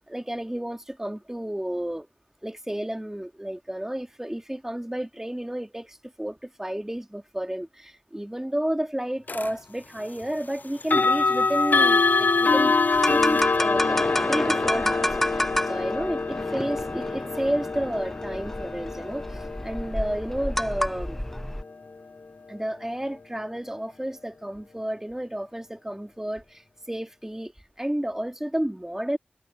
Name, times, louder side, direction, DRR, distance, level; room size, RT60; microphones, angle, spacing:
voice 1, 0.1-2.1 2.4-12.7 13.1-14.0 14.3-21.2 22.5-29.2, right 1 dB, 15° right, 2.6 m, -31 dB
sound 1, 9.3-9.5 10.8-21.7, left 4 dB, 60° left, 0.5 m, -25 dB
sound 2, 12.9-21.6, equal, 5° left, 0.6 m, -30 dB
wide cardioid pair, 50°, 3 cm